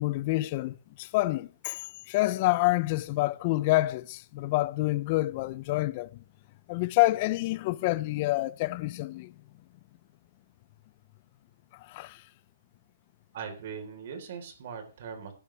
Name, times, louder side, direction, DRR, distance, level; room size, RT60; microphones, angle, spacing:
voice 1, 0.0-1.8 2.1-6.1 6.7-9.3 11.9-12.1, left 19 dB, 35° left, 0.6 m, -27 dB
voice 2, 13.3-15.3, right 6 dB, 55° right, 4.2 m, -40 dB
17.0 x 11.0 x 3.5 m
hypercardioid pair, 160°, 0 cm